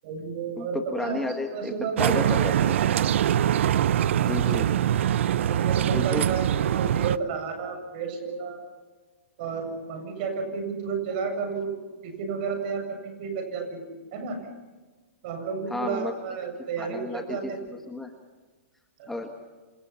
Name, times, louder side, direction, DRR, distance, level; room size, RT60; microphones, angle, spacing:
voice 1, 0.0-2.2 2.5-2.7 5.4-8.6 9.4-11.8 12.0-14.5 15.2-17.8 19.0-19.1, right 5 dB, 45° right, 6 dB, 7.6 m, -32 dB
voice 2, 0.6-1.7 2.0-2.8 4.2-4.7 5.9-6.2 15.7-16.1 16.8-17.5 17.9-18.1 19.1-19.3, left 2 dB, 5° left, 4 dB, 1.5 m, -32 dB
sound 1, 2.0-7.2, right 10 dB, 65° right, 0.7 m, -23 dB
28.0 x 27.0 x 5.8 m, 1.3 s
hypercardioid pair, 155°, 7 cm